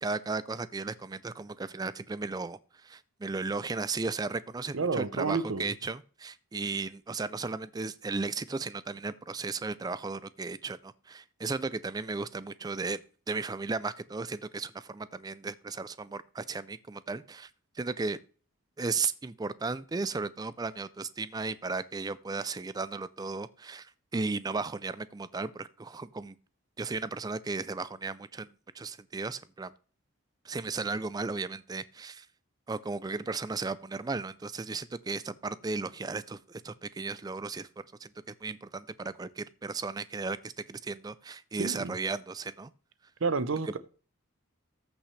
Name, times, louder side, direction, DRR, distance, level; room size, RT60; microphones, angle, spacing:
voice 1, 0.0-13.0 13.3-17.5 17.8-18.2 18.8-26.3 26.8-29.7 30.4-32.3 32.7-37.7 38.0-38.1 38.4-42.7, right 4 dB, 20° right, 0.3 m, -35 dB
voice 2, 4.7-5.7 41.6-41.9 43.2-43.8, right 4 dB, 65° right, 0.7 m, -30 dB
14.0 x 5.9 x 3.2 m
head